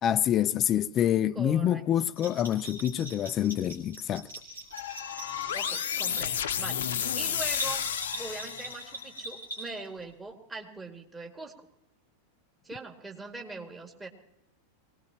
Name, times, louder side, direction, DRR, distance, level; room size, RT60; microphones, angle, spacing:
voice 1, 0.0-4.3, left 10 dB, 30° left, 0.5 m, -26 dB
voice 2, 1.3-1.8 5.3-7.9 8.1-11.5 12.6-14.1, right 3 dB, 10° right, 2.3 m, -42 dB
Bell, 2.1-10.0, right 1 dB, 80° right, 4.8 m, -42 dB
sound 1, 4.7-9.0, left 9 dB, 60° left, 0.7 m, -32 dB
23.0 x 18.0 x 3.0 m
figure-of-eight pair, 90°, 0 cm